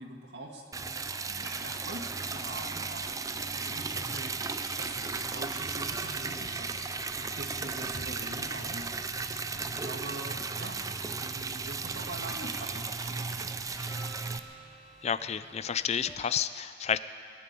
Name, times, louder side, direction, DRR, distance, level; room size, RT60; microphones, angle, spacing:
voice 1, 0.0-8.9 9.5-10.8 11.2-13.5, right 2 dB, 75° right, 1 dB, 2.0 m, -44 dB
Liquid, 0.7-14.4, right 4 dB, 20° right, 0.5 m, -35 dB
sound 1, 0.9-16.2, equal, ahead, 1.6 m, -53 dB
voice 2, 15.0-17.0, left 8 dB, 40° left, 14 dB, 0.4 m, -30 dB
20.0 x 8.8 x 7.7 m, 2.2 s
head